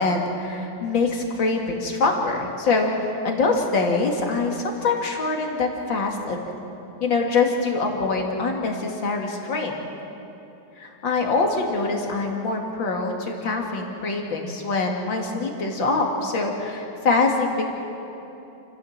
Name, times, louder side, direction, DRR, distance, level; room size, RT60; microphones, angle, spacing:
voice 1, 0.0-6.4 7.0-9.7 10.8-17.7, left 3 dB, 85° left, 1 dB, 3.0 m, -24 dB
29.0 x 15.0 x 7.4 m, 3.0 s
omnidirectional pair, 2.0 m